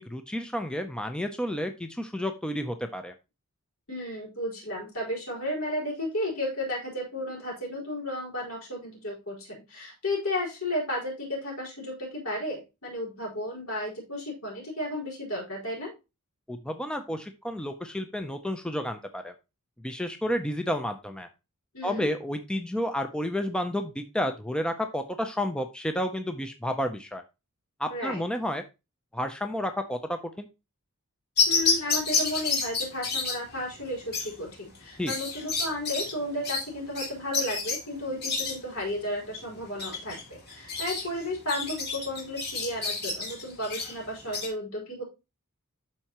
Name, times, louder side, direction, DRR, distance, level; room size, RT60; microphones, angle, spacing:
voice 1, 0.0-3.1 16.5-19.3 19.8-21.3 21.8-27.2 27.8-28.6 29.1-30.5 35.0-35.1, equal, 5° left, 6 dB, 0.6 m, -31 dB
voice 2, 3.9-15.9 21.7-22.1 27.9-28.2 31.5-45.0, left 1 dB, 70° left, -3 dB, 4.4 m, -33 dB
sound 1, 31.4-44.5, left 4 dB, 50° left, 2.5 m, -30 dB
12.0 x 4.4 x 3.0 m, 0.26 s
head